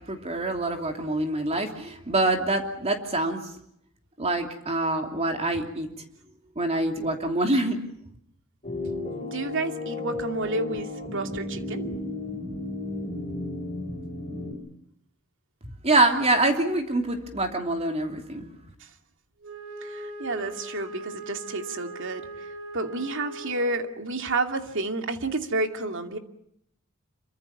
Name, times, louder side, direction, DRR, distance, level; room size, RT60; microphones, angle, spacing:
voice 1, 0.1-3.4 4.2-5.9 6.6-7.8 15.8-18.5, right 2 dB, 30° right, 4 dB, 3.0 m, -25 dB
sound 1, 8.6-14.5, left 2 dB, 30° left, 7.8 m, -33 dB
voice 2, 9.2-11.8 18.8-18.9 19.8-22.5 22.7-26.2, right 2 dB, 60° right, 6 dB, 2.6 m, -30 dB
Wind instrument woodwind instrument, 19.4-24.0, right 1 dB, 80° right, 6.6 m, -40 dB
27.5 x 24.5 x 7.2 m, 0.73 s
head